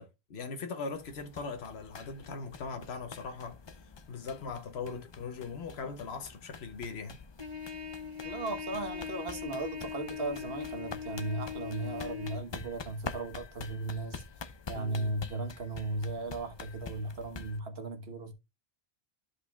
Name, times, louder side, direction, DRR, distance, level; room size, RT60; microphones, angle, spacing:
voice 1, 0.0-7.2 14.7-15.2, left 4 dB, 90° left, 1.2 m, -40 dB
sound 1, 0.9-17.6, left 4 dB, 35° left, 0.5 m, -47 dB
Trumpet, 7.4-12.4, left 7 dB, 30° right, 1.2 m, -40 dB
voice 2, 8.2-14.2 14.7-18.3, right 2 dB, 75° right, 1.5 m, -36 dB
12.5 x 5.1 x 2.2 m
omnidirectional pair, 1.0 m